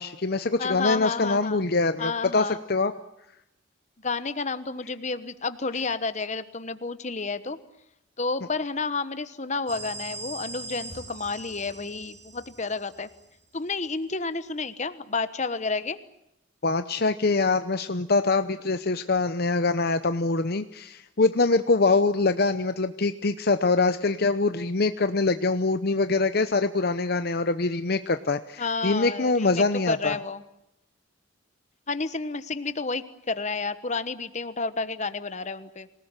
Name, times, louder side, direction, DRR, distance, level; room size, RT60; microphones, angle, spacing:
voice 1, 0.0-2.9 16.6-30.1, left 3 dB, 55° left, 10 dB, 0.8 m, -24 dB
voice 2, 0.6-1.6 2.0-2.6 4.0-7.6 8.2-13.1 13.5-16.0 28.6-30.4 31.9-35.9, left 4 dB, 40° left, 13 dB, 1.2 m, -30 dB
sound 1, 9.7-13.4, right 3 dB, 40° right, 7.1 m, -41 dB
26.5 x 18.5 x 9.0 m, 0.83 s
head